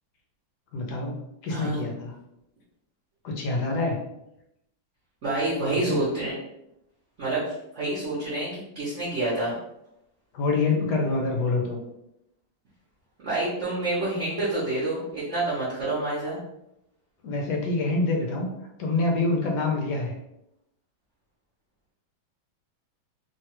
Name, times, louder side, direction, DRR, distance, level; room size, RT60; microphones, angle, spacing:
voice 1, 0.7-2.1 3.2-4.0 5.8-6.0 10.3-11.8 17.2-18.5 18.8-20.1, left 3 dB, 70° left, 0 dB, 1.1 m, -26 dB
voice 2, 1.5-1.8 5.2-6.3 7.2-7.4 7.7-9.6 13.2-16.4, right 2 dB, 50° right, -9 dB, 0.9 m, -28 dB
3.1 x 2.3 x 2.9 m, 0.83 s
omnidirectional pair, 2.1 m